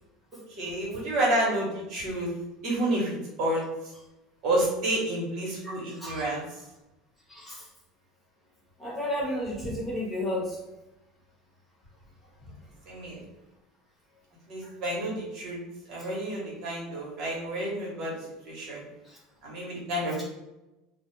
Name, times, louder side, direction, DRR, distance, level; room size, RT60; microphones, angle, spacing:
voice 1, 0.6-2.3 2.6-3.6 4.4-6.4 12.9-13.2 14.5-15.6 15.9-18.1 18.4-18.8 19.4-20.2, right 1 dB, 55° right, -4 dB, 1.0 m, -29 dB
voice 2, 5.6-6.3 7.3-7.6 8.8-10.6, left 1 dB, 10° left, -5 dB, 1.0 m, -32 dB
2.3 x 2.1 x 3.0 m, 0.96 s
supercardioid pair, 110°, 0 cm